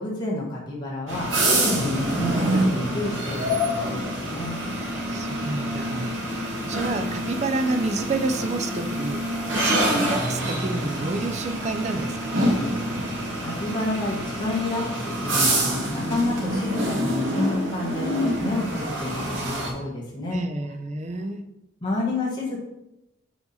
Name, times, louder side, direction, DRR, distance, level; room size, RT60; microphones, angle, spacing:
voice 1, 0.0-4.5 13.1-20.4 21.8-22.6, left 2 dB, 25° left, -5 dB, 1.1 m, -29 dB
sound 1, 1.1-19.7, right 1 dB, 80° right, 1.6 m, -26 dB
voice 2, 5.1-9.2 9.5-12.5 20.3-21.4, right 2 dB, 35° right, 7 dB, 0.4 m, -29 dB
5.3 x 4.6 x 4.1 m, 0.90 s
head